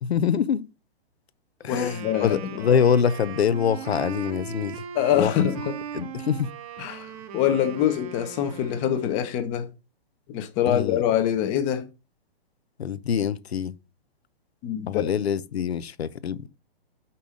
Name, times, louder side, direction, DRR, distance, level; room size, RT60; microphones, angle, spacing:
voice 1, 0.0-0.7 1.6-4.8 5.2-5.3 5.9-6.5 10.7-11.0 12.8-13.8 14.9-16.5, left 7 dB, 90° left, 0.7 m, -24 dB
Wind instrument woodwind instrument, 1.6-9.4, right 8 dB, 40° right, 0.9 m, -39 dB
voice 2, 1.7-2.4 4.9-5.8 6.8-9.7 10.3-11.9 14.6-15.1, left 10 dB, 25° left, 0.8 m, -25 dB
5.5 x 4.1 x 5.0 m
hypercardioid pair, 145°, 31 cm